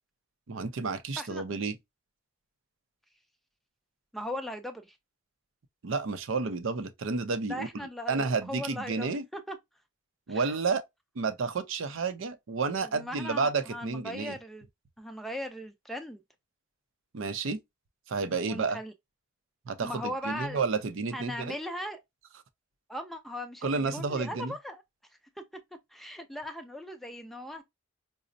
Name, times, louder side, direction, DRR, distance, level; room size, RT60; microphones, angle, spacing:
voice 1, 0.5-1.8 5.8-9.2 10.3-10.8 11.2-14.4 17.1-17.6 18.1-18.8 19.7-21.6 23.6-24.5, right 4 dB, 65° right, 0.5 m, -31 dB
voice 2, 4.1-5.0 7.5-9.6 10.3-10.6 12.8-14.7 15.0-16.2 18.4-18.9 19.8-20.6 21.1-22.0 22.9-24.8 25.9-27.6, left 1 dB, ahead, 0.4 m, -38 dB
4.9 x 2.0 x 2.6 m
head